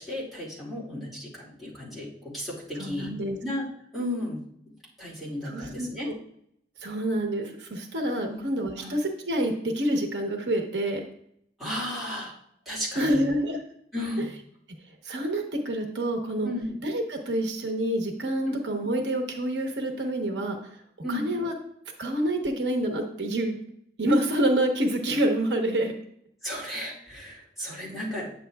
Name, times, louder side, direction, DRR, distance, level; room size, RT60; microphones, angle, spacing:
voice 1, 0.0-3.1 3.4-3.6 3.9-4.4 5.0-6.1 8.3-8.4 8.8-8.9 11.6-12.3 12.7-13.2 13.9-14.3 16.4-16.7 18.5-18.6 21.0-21.3 26.4-28.3, left 1 dB, ahead, -8 dB, 2.2 m, -34 dB
voice 2, 2.7-3.4 5.4-5.9 6.8-11.0 13.0-13.6 15.0-16.5 16.8-20.6 21.1-21.5 22.0-23.6 24.0-25.9, right 1 dB, 80° right, 4 dB, 1.0 m, -27 dB
9.0 x 6.9 x 2.3 m, 0.72 s
head